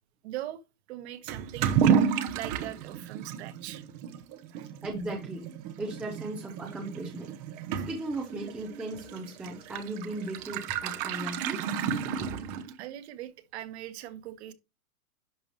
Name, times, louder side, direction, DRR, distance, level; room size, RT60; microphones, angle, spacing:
voice 1, 0.2-0.6 0.9-1.7 2.0-3.8 4.5-4.7 12.4-12.5 12.8-14.5, right 13 dB, 45° right, 1.4 m, -41 dB
Toilet flush / Liquid, 1.3-12.9, right 7 dB, 25° right, 0.8 m, -31 dB
voice 2, 4.8-5.5 5.8-7.3 7.9-11.6 12.1-12.4, right 2 dB, 5° right, 0.5 m, -37 dB
11.0 x 5.5 x 3.0 m
hypercardioid pair, 155°, 46 cm